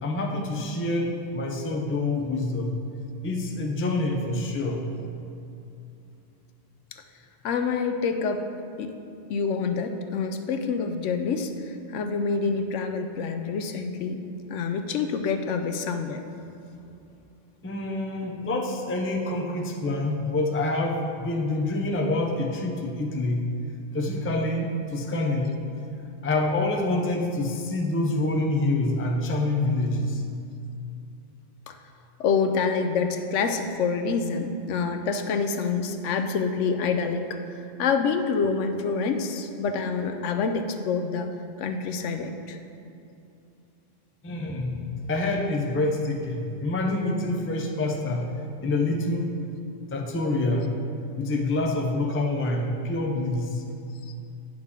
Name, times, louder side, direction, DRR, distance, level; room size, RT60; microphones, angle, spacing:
voice 1, 0.0-2.8 3.2-4.9 17.6-23.5 23.9-25.6 26.2-30.2 44.2-49.3 49.9-50.7 51.2-53.6, left 2 dB, 15° left, 1 dB, 0.4 m, -27 dB
voice 2, 7.4-8.4 8.8-8.9 9.3-14.2 14.5-16.2 31.7-31.8 32.2-37.4 37.8-41.3 41.6-42.6 54.0-54.1, left 5 dB, 75° left, 7 dB, 0.9 m, -27 dB
9.5 x 6.3 x 3.7 m, 2.6 s
omnidirectional pair, 1.3 m